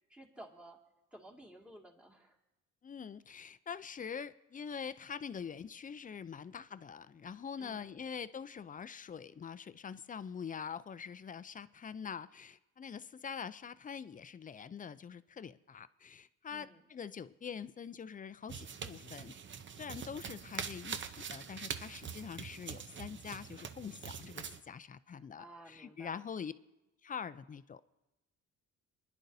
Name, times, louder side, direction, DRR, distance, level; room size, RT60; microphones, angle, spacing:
voice 1, 0.1-0.8 1.1-2.4 7.6-8.1 16.5-16.8 25.2-26.3, right 1 dB, 5° right, 0 dB, 2.1 m, -54 dB
voice 2, 2.8-19.3 19.8-26.5 27.0-27.8, left 7 dB, 25° left, 15 dB, 0.4 m, -44 dB
sound 1, 18.5-24.6, right 6 dB, 40° right, 0.7 m, -44 dB
23.5 x 10.5 x 2.7 m, 0.98 s
cardioid pair, 90°, 30 cm